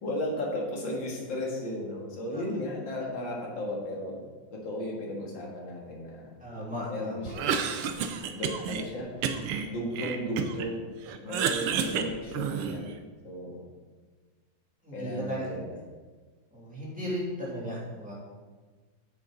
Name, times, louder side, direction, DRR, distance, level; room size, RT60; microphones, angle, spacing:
voice 1, 0.0-4.2 4.5-6.3 6.9-7.5 8.3-9.1 9.7-10.9 11.2-12.8 13.2-13.7 14.9-15.8, left 1 dB, 60° left, -2 dB, 2.5 m, -35 dB
voice 2, 6.4-7.3 14.8-15.5 16.5-18.1, equal, 5° right, -6 dB, 2.7 m, -35 dB
Cough, 7.3-8.8 9.2-10.7 11.0-12.9, right 7 dB, 85° right, 1.6 m, -30 dB
9.3 x 7.7 x 3.9 m, 1.4 s
omnidirectional pair, 2.4 m